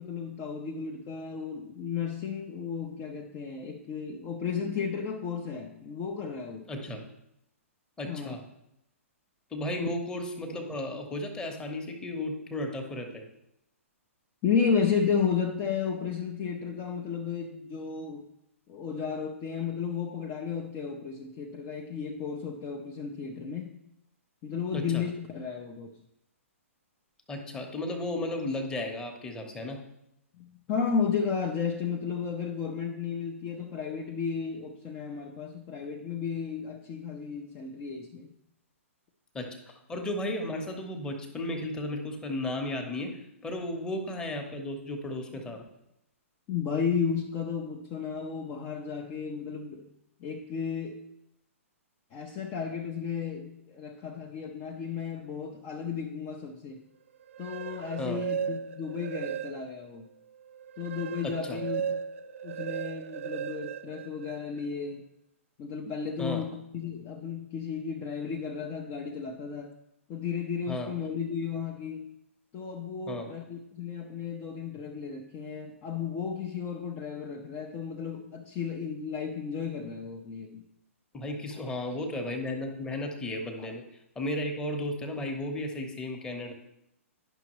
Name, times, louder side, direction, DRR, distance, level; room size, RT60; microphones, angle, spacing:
voice 1, 0.0-6.7 8.0-8.4 9.8-9.9 14.4-18.2 18.7-23.8 24.4-25.9 30.4-38.3 45.3-45.4 46.5-49.9 50.2-51.0 52.1-56.8 57.4-60.1 60.8-61.9 62.4-65.0 65.6-69.7 70.1-72.1 72.5-80.6 83.6-83.7, left 6 dB, 30° left, 1 dB, 0.7 m, -33 dB
voice 2, 6.7-7.0 8.0-8.4 9.5-13.2 24.7-25.0 27.3-29.8 39.3-43.1 43.4-45.6 58.0-58.2 61.4-61.6 66.2-66.4 70.7-70.9 73.1-73.3 81.1-83.8 84.1-86.5, left 1 dB, 10° left, 2 dB, 1.0 m, -34 dB
sound 1, 57.2-59.9 60.3-64.7, right 8 dB, 65° right, 0.4 m, -36 dB
9.9 x 5.8 x 3.1 m, 0.81 s
hypercardioid pair, 130°, 8 cm